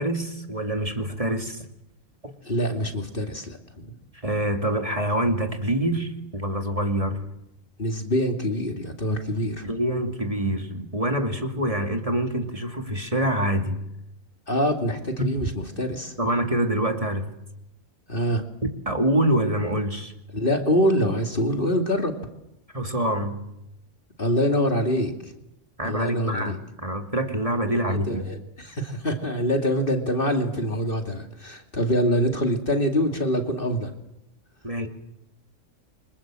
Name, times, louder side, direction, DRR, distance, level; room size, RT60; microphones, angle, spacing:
voice 1, 0.0-1.6 4.2-7.2 9.6-13.8 15.2-15.3 16.2-17.3 18.6-20.1 22.7-23.4 25.8-28.3 34.6-34.9, right 1 dB, 25° right, 4 dB, 2.8 m, -25 dB
voice 2, 2.4-3.9 7.8-9.6 14.5-16.1 18.1-18.4 20.3-22.1 24.2-25.3 25.8-26.6 27.9-33.9, equal, 40° left, 4 dB, 2.7 m, -25 dB
28.5 x 25.5 x 7.7 m, 0.85 s
omnidirectional pair, 1.4 m